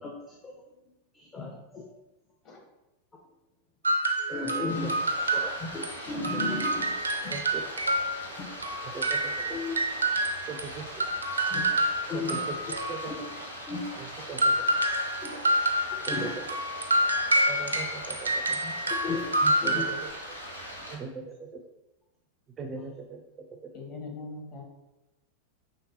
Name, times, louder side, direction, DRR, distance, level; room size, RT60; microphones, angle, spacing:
voice 1, 0.0-0.6 1.1-1.8 4.3-6.9 7.2-7.3 8.3-8.5 8.8-8.9 9.5-9.8 11.5-11.8 12.1-12.5 13.0-13.2 13.7-13.8 15.2-15.3 15.9-16.3 18.6-19.2 19.6-19.8, left 3 dB, 20° left, -1 dB, 0.6 m, -35 dB
sound 1, 3.8-6.0 6.2-10.7 11.0-13.4 14.4-20.1, right 1 dB, 75° right, 0.5 m, -28 dB
Stream, 4.7-20.9, equal, 85° left, 0.9 m, -41 dB
voice 2, 7.3-7.7 8.9-9.6 10.5-11.1 12.1-12.6 12.9-13.1 14.0-14.5 16.1-16.3 17.5-18.6 19.4-20.1 20.9-21.6 22.6-23.2 23.5-23.7, right 4 dB, 25° right, 4 dB, 0.4 m, -39 dB
voice 3, 23.7-24.6, left 3 dB, 40° left, -1 dB, 1.4 m, -41 dB
5.8 x 3.4 x 2.7 m, 0.96 s
figure-of-eight pair, 90°, 0 cm